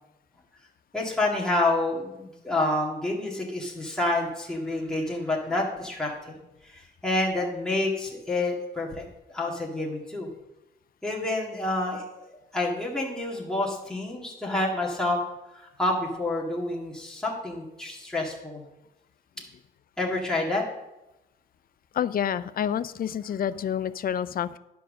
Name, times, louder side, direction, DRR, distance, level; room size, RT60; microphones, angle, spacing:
voice 1, 0.9-9.0 9.3-10.3 11.0-12.2 12.5-15.2 15.8-18.6 20.0-20.6, left 2 dB, 5° left, -4 dB, 2.0 m, -28 dB
voice 2, 21.9-24.6, left 9 dB, 45° left, 15 dB, 0.5 m, -28 dB
11.0 x 4.6 x 6.4 m, 0.94 s
cardioid pair, 90°, 20 cm